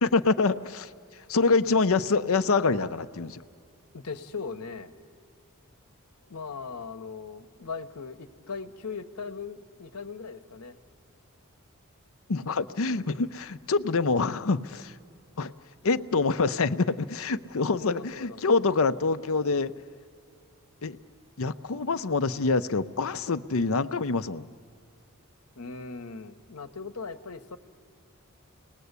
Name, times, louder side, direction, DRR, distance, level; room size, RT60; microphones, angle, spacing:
voice 1, 0.0-0.9 1.3-3.4 12.3-15.0 15.4-15.5 15.8-19.7 20.8-21.0 21.4-24.5, left 4 dB, 65° left, 11 dB, 0.7 m, -26 dB
voice 2, 3.9-4.9 6.3-10.8 17.6-18.4 25.6-27.6, left 4 dB, 80° left, 9 dB, 1.1 m, -39 dB
29.0 x 20.0 x 8.2 m, 2.3 s
head